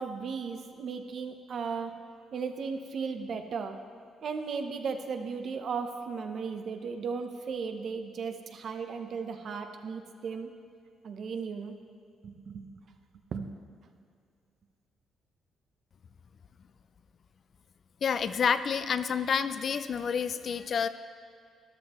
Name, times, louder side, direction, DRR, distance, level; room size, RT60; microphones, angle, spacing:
voice 1, 0.0-1.9 2.3-3.8 4.2-10.5 11.0-11.7 12.2-12.7 13.3-13.5, right 5 dB, 60° right, 6 dB, 0.9 m, -36 dB
voice 2, 18.0-20.9, left 6 dB, 55° left, 12 dB, 0.4 m, -29 dB
13.0 x 11.5 x 3.1 m, 2.3 s
cardioid pair, 90°, 0 cm